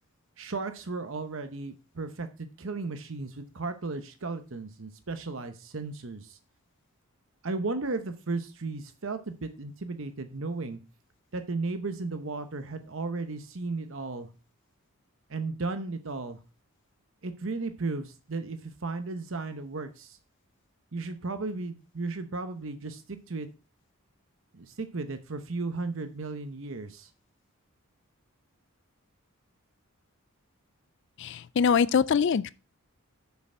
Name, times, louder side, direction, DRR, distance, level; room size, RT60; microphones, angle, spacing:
voice 1, 0.4-6.4 7.4-10.8 11.3-14.3 15.3-16.4 17.2-20.2 20.9-23.5 24.5-27.1, right 3 dB, 60° right, 0.8 m, -35 dB
voice 2, 31.2-32.5, left 6 dB, 55° left, 0.4 m, -23 dB
6.9 x 6.6 x 4.4 m
head